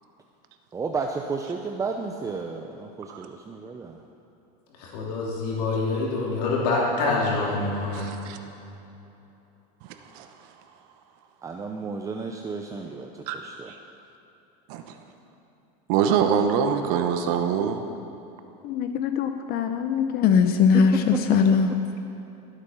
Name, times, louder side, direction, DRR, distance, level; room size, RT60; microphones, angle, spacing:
voice 1, 0.7-4.0 11.4-13.7 20.7-21.2, right 4 dB, 15° right, 3 dB, 0.6 m, -32 dB
voice 2, 4.8-8.2, left 3 dB, 75° left, -4 dB, 3.0 m, -26 dB
voice 3, 7.9-8.4 10.1-10.3 13.3-13.4 13.7-13.8 14.7-15.0 15.9-17.8, right 7 dB, 65° right, 6 dB, 1.0 m, -24 dB
voice 4, 18.6-21.7, left 6 dB, 50° left, 8 dB, 0.8 m, -21 dB
16.5 x 8.3 x 5.7 m, 2.9 s
supercardioid pair, 135°, 21 cm